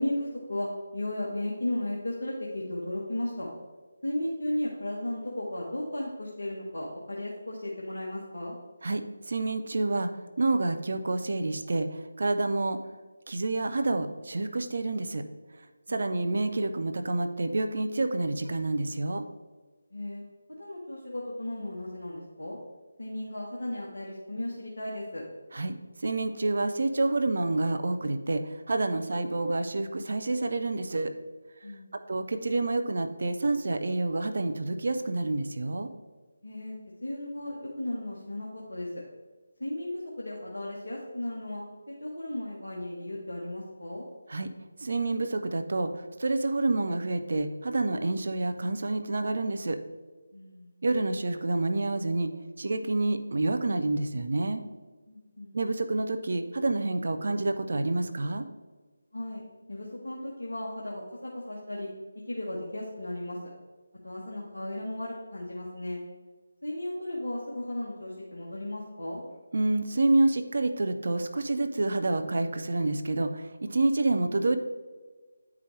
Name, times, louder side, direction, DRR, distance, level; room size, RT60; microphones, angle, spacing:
voice 1, 0.0-3.5 4.0-8.6 15.9-16.2 19.9-20.2 20.6-22.6 23.0-25.2 31.6-31.9 36.4-36.7 37.0-38.9 39.6-41.6 41.9-44.0 50.3-50.7 55.1-55.6 59.1-59.4 59.7-61.9 62.3-63.4 64.0-66.0 66.6-69.2, left 1 dB, 65° left, -4 dB, 1.3 m, -35 dB
voice 2, 8.8-10.1 10.4-11.9 12.2-12.8 13.3-15.2 15.9-19.3 25.5-25.7 26.0-31.1 32.1-35.9 44.3-44.5 44.8-45.9 46.2-49.8 50.8-52.3 52.6-54.6 55.5-58.5 69.5-74.6, right 2 dB, 50° right, 8 dB, 0.5 m, -28 dB
9.8 x 4.8 x 3.2 m, 1.3 s
figure-of-eight pair, 155°, 0 cm